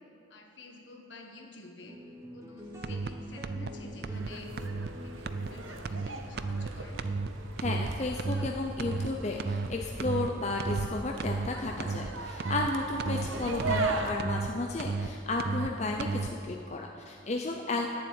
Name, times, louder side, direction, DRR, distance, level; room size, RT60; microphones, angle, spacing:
voice 1, 0.3-2.0 2.3-4.5 5.0-7.0, left 2 dB, 65° left, 2 dB, 1.5 m, -50 dB
sound 1, 1.9-8.5, left 1 dB, 15° right, 1.0 m, -47 dB
sound 2, 2.8-3.1 3.4-3.7 4.0-4.3 4.6-4.9 5.2-5.5 5.8-6.1 6.4-6.7 7.0-7.3 7.6-7.9 8.2-8.5 8.8-9.1 9.4-9.7 10.0-10.3 10.6-10.9 11.2-11.5 11.8-12.1 12.4-12.7 13.0-13.3 13.6-13.9 14.2-14.5 14.8-15.1 15.4-15.7 16.0-16.3, right 4 dB, 50° right, 0.4 m, -33 dB
sound 3, 4.1-14.1, right 3 dB, 80° right, 1.0 m, -38 dB
voice 2, 7.6-17.9, left 2 dB, 35° left, 1 dB, 0.6 m, -33 dB
11.5 x 7.3 x 8.7 m, 2.9 s
head